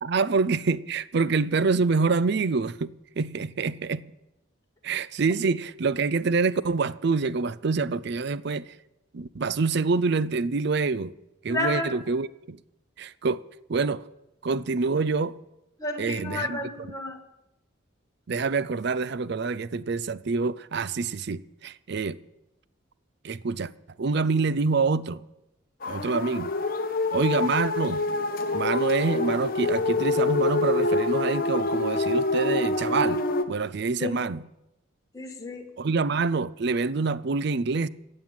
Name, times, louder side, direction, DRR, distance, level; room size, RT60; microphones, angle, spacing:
voice 1, 0.0-4.0 4.8-8.7 9.1-11.1 11.4-12.6 13.0-13.4 13.7-14.0 14.4-15.3 16.0-16.6 18.3-22.2 23.2-23.7 24.0-25.2 25.9-26.5 27.1-28.0 28.5-33.2 33.5-34.4 35.8-37.9, right 4 dB, 55° right, 0.5 m, -26 dB
voice 2, 11.5-12.0 15.8-17.2 34.0-34.2 35.1-35.7, left 2 dB, 15° left, 1.7 m, -31 dB
sound 1, 25.8-33.4, left 3 dB, 45° left, 1.0 m, -26 dB
15.0 x 7.7 x 8.9 m
head